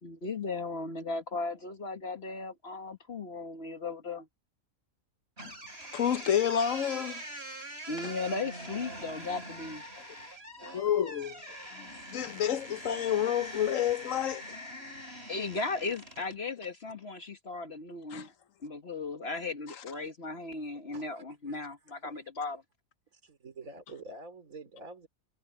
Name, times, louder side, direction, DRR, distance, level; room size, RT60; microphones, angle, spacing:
voice 1, 0.0-4.3 7.9-9.8 15.3-18.3 18.6-22.6, left 3 dB, 50° left, 1.7 m, -36 dB
sound 1, 5.4-16.4, right 1 dB, 45° right, 7.3 m, -44 dB
voice 2, 5.9-7.2 8.0-8.1 10.6-11.4 11.7-14.4 18.1-18.3, left 9 dB, 70° left, 1.3 m, -29 dB
voice 3, 20.9-22.2 23.1-25.1, right 2 dB, 75° right, 4.1 m, -48 dB
omnidirectional pair, 1.4 m